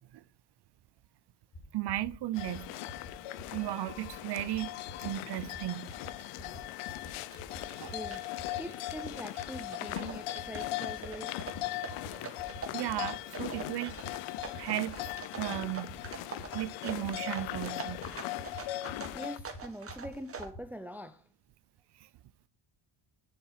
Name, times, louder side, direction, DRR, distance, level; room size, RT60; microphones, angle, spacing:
sound 1, 1.5-1.6 1.9-2.1 2.4-2.6 2.9-3.1 3.4-3.6 3.9-4.1 4.4-4.6 4.9-5.1 5.4-5.6 5.9-6.1 6.4-6.6 6.9-7.1 7.4-7.6 7.9-8.1 8.4-8.6 8.9-9.1 9.4-9.6 9.9-10.1 10.4-10.6 10.9-11.1 11.4-11.6 11.9-12.1 12.4-12.6 12.9-13.1 13.4-13.6 13.9-14.1 14.4-14.6 14.9-15.1 15.4-15.6 15.9-16.1 16.4-16.6 16.9-17.1 17.4-17.6 17.9-18.1 18.4-18.6 18.9-19.1 19.4-19.6 19.9-20.1 20.4-20.6, left 1 dB, 55° left, 6.4 m, -46 dB
voice 1, 1.7-2.7 3.5-4.7 5.0-5.9 7.8-7.9 12.7-13.9 14.5-15.0 15.4-16.0 16.5-18.0 22.0-22.1, right 14 dB, 55° right, 0.7 m, -35 dB
sound 2, 2.3-19.4, left 15 dB, 85° left, 0.8 m, -39 dB
sound 3, 5.0-20.5, right 5 dB, 25° right, 1.9 m, -46 dB
voice 2, 7.9-11.4 19.1-21.2, right 1 dB, 5° right, 0.7 m, -43 dB
9.8 x 7.1 x 5.7 m
cardioid pair, 125°, 49 cm